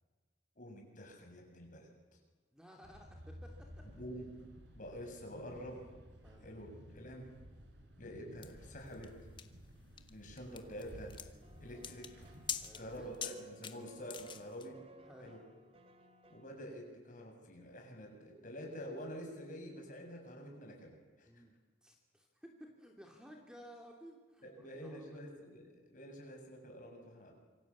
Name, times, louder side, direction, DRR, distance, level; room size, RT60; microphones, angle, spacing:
voice 1, 0.6-1.9 4.0-4.3 4.8-5.9 6.4-7.3 8.0-9.2 10.1-11.2 11.6-12.3 12.7-14.8 15.2-15.4 16.3-21.4 24.4-27.3, equal, 45° left, 2 dB, 7.0 m, -48 dB
voice 2, 2.5-3.9 6.2-6.5 12.6-13.1 13.6-13.8 15.0-15.4 21.3-21.5 21.8-25.2, equal, 5° right, 1 dB, 2.8 m, -56 dB
sound 1, 2.8-13.2, equal, 75° right, 4.5 m, -55 dB
sound 2, 8.4-14.7, left 7 dB, 25° left, 1.4 m, -45 dB
sound 3, 11.4-16.5, right 1 dB, 30° right, 2.5 m, -61 dB
27.0 x 24.5 x 8.6 m, 1.4 s
head